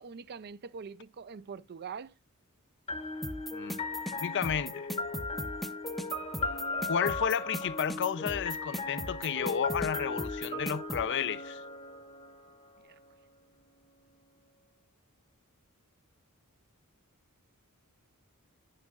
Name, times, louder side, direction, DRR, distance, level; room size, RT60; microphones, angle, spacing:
voice 1, 0.0-2.1 12.8-12.9, right 6 dB, 45° right, 0.4 m, -43 dB
sound 1, 2.9-12.7, left 3 dB, 30° left, 1.0 m, -37 dB
sound 2, 3.2-11.0, equal, ahead, 0.6 m, -38 dB
voice 2, 4.2-4.9 6.9-11.6, left 7 dB, 55° left, 0.5 m, -32 dB
10.5 x 9.8 x 2.4 m
head